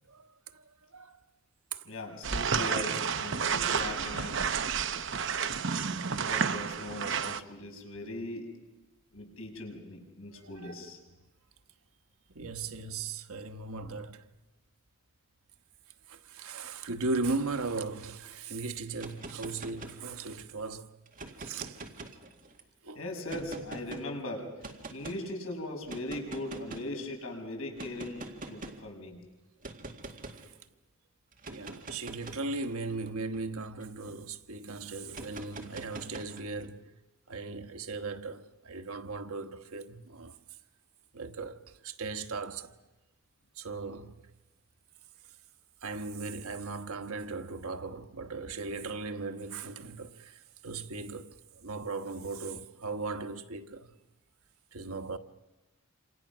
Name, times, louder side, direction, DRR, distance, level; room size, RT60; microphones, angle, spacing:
voice 1, 0.1-1.2 1.7-1.9 3.6-4.3 5.3-5.8 10.3-10.9 12.3-14.3 16.1-21.0 21.4-21.8 22.8-23.0 28.6-28.7 30.3-30.6 31.5-37.0 37.3-40.4 41.1-42.8 43.5-44.2 45.8-53.9 54.7-55.2, right 3 dB, 85° right, 1.3 m, -38 dB
voice 2, 1.8-4.5 5.4-5.6 6.1-8.5 9.1-11.0 23.0-29.2, left 1 dB, 75° left, 6.1 m, -39 dB
sound 1, 2.2-7.4, right 6 dB, 55° right, 0.8 m, -30 dB
sound 2, 18.9-20.4 21.1-22.6 23.3-24.0 24.6-25.2 25.9-27.0 27.8-28.9 29.6-30.5 31.3-34.1 35.1-36.7, right 2 dB, 40° right, 2.0 m, -44 dB
28.0 x 27.0 x 6.1 m
head